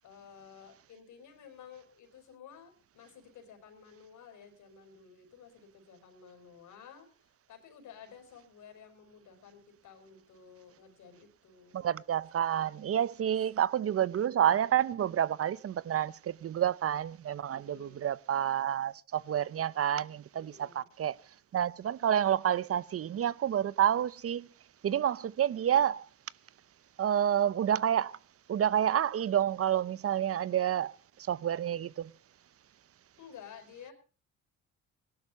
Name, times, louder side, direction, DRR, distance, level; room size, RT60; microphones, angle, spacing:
voice 1, 0.0-11.8 12.6-13.0 17.5-18.0 20.3-20.9 33.1-33.9, left 7 dB, 75° left, 5.0 m, -53 dB
voice 2, 11.7-21.2 21.5-24.5 24.8-26.0 27.0-28.1 28.5-32.1, right 10 dB, 50° right, 0.7 m, -29 dB
18.0 x 12.0 x 5.4 m
cardioid pair, 90°, 30 cm